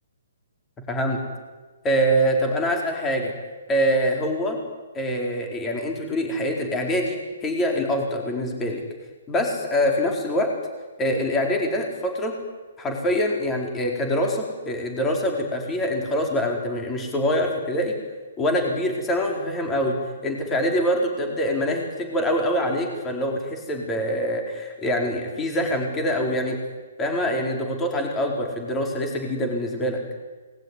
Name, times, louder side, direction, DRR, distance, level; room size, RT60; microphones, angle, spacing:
voice 1, 0.9-1.2 1.8-3.3 3.7-4.6 4.9-8.8 9.3-10.5 11.0-12.3 12.8-18.0 18.4-20.0 20.2-26.6 27.0-30.0, equal, 10° left, 2 dB, 4.5 m, -24 dB
28.0 x 20.5 x 9.9 m, 1.3 s
hypercardioid pair, 170°, 0 cm